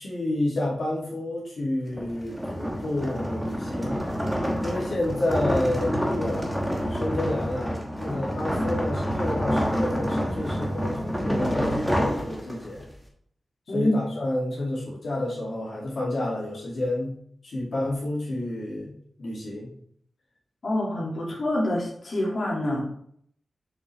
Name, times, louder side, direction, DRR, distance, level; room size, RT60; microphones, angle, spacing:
voice 1, 0.0-4.0 4.6-12.9 13.7-17.1 17.4-19.7, left 1 dB, 65° left, -6 dB, 2.3 m, -30 dB
sound 1, 1.9-12.8, equal, ahead, 1.1 m, -28 dB
voice 2, 20.6-22.8, left 1 dB, 50° left, -5 dB, 2.2 m, -26 dB
6.6 x 5.5 x 3.3 m, 0.65 s
wide cardioid pair, 170°, 0 cm